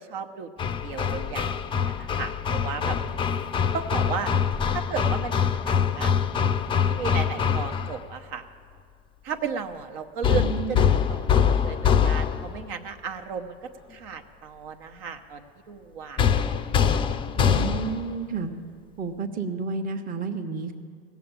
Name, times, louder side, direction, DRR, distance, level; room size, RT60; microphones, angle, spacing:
voice 1, 0.0-3.0 3.7-4.3 4.7-6.1 6.9-8.4 9.2-13.6 13.9-16.9, right 6 dB, 65° right, 6 dB, 1.0 m, -35 dB
Hammer, 0.6-8.0 10.2-12.6 16.2-18.1, left 7 dB, 15° left, 0.4 m, -24 dB
voice 2, 10.3-10.9 17.4-18.5 19.0-20.7, right 4 dB, 25° right, 5 dB, 1.0 m, -31 dB
17.0 x 7.1 x 8.9 m, 2.2 s
supercardioid pair, 120°, 31 cm